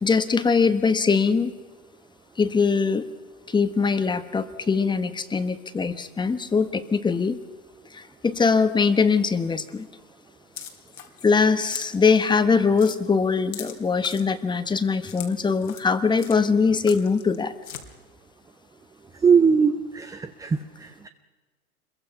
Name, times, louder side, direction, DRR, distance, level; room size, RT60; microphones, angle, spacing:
voice 1, 0.0-1.5 2.4-3.1 3.5-7.4 7.9-9.9 11.2-17.5, left 5 dB, 10° left, 11 dB, 1.2 m, -22 dB
sound 1, 10.6-11.4 11.6-11.9 12.3-12.4 12.8-13.0 13.5-14.2 15.1-15.3 15.6-15.9 16.2-16.4 16.8-17.4 17.6-17.8, left 9 dB, 80° left, 3.2 m, -39 dB
voice 2, 19.2-21.1, right 6 dB, 10° right, 9 dB, 0.7 m, -21 dB
26.0 x 22.0 x 5.8 m, 1.4 s
hypercardioid pair, 120°, 45 cm